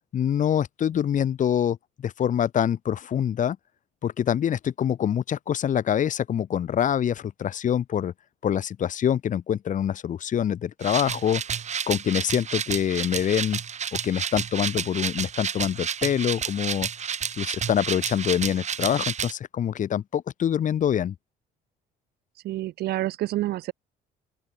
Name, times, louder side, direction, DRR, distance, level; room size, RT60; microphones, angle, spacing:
voice 1, 0.1-1.8 2.0-3.6 4.0-8.1 8.4-11.4 11.9-13.6 13.9-16.9 17.4-21.1, left 9 dB, 50° left, 2.1 m, -25 dB
sound 1, 10.8-19.3, right 7 dB, 45° right, 5.0 m, -31 dB
voice 2, 22.4-23.7, right 15 dB, 70° right, 1.4 m, -28 dB
open air
cardioid pair, 110°, 17 cm